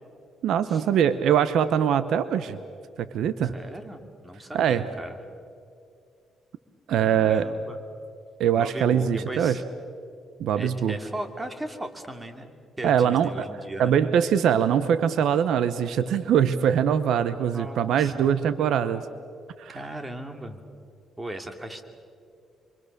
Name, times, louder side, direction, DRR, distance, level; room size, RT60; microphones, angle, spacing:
voice 1, 0.4-2.6 3.0-3.5 4.5-4.8 6.9-7.5 8.4-9.6 10.4-11.0 12.8-13.5 13.8-19.0 19.6-19.8, right 8 dB, 75° right, 13 dB, 0.9 m, -22 dB
voice 2, 3.4-5.2 7.1-7.8 8.5-9.6 10.5-12.5 12.8-13.9 17.5-18.3 19.7-20.6 21.2-21.8, right 1 dB, 15° right, 6 dB, 2.6 m, -37 dB
27.5 x 24.5 x 6.7 m, 2.4 s
cardioid pair, 90°, 0 cm